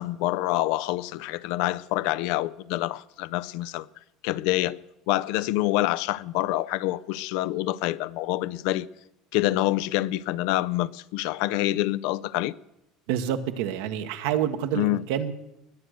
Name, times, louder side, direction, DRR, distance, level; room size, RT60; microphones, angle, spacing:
voice 1, 0.0-3.9 4.2-4.8 5.1-8.9 9.3-12.5 14.7-15.0, left 16 dB, 75° left, 0.5 m, -26 dB
voice 2, 13.1-15.3, right 10 dB, 80° right, 1.1 m, -28 dB
20.5 x 7.9 x 6.4 m
supercardioid pair, 115°, 0 cm